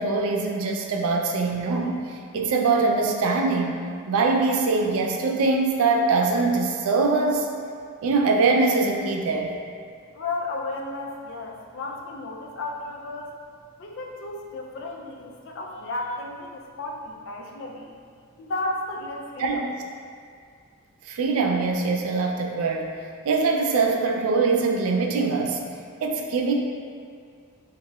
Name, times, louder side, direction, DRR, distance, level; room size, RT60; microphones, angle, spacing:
voice 1, 0.0-7.5 8.0-9.6 19.4-19.7 21.1-22.9 23.3-25.6 26.0-26.5, right 3 dB, 70° right, 2 dB, 0.3 m, -23 dB
voice 2, 10.1-13.3 13.8-17.9 18.4-19.6, left 2 dB, 55° left, 0 dB, 0.3 m, -33 dB
3.0 x 2.8 x 2.2 m, 2.2 s
head